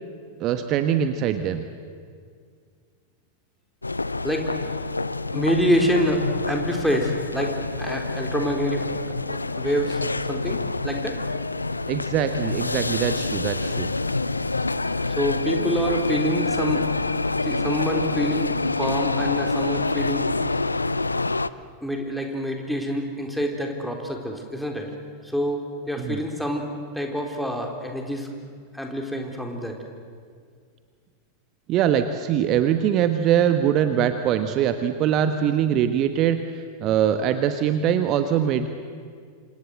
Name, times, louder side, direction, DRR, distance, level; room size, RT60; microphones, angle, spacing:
voice 1, 0.4-1.6 11.9-13.9 26.0-26.2 31.7-36.4 36.8-38.7, right 9 dB, 35° right, 9 dB, 1.3 m, -22 dB
sound 1, 3.8-21.5, left 3 dB, 80° left, 0.6 m, -27 dB
voice 2, 4.2-4.9 5.3-8.9 9.6-10.0 10.3-11.2 15.0-16.9 17.4-20.3 21.8-24.9 25.2-26.7 26.9-28.3 28.7-29.7, equal, ahead, 2 dB, 4.1 m, -26 dB
28.5 x 26.0 x 7.9 m, 2.1 s
figure-of-eight pair, 90°, 0 cm